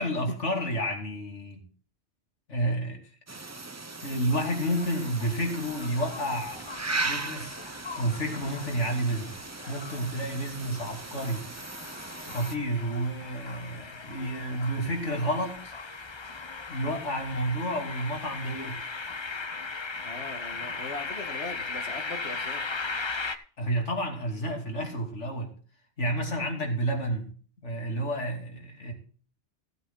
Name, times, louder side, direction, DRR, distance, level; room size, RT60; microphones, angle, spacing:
voice 1, 0.0-1.6 2.5-3.0 4.0-6.6 7.0-7.6 8.0-9.3 9.7-11.5 12.2-15.7 16.7-18.8 23.6-25.5 26.0-27.3 27.6-28.9, right 1 dB, 85° left, 2 dB, 3.1 m, -30 dB
sound 1, 3.3-12.6, right 3 dB, 20° right, 0.5 m, -38 dB
sound 2, 4.5-23.4, left 4 dB, 30° left, 0.7 m, -39 dB
voice 2, 20.0-22.7, left 3 dB, 70° left, 6 dB, 2.0 m, -40 dB
15.5 x 8.0 x 3.9 m, 0.42 s
omnidirectional pair, 1.2 m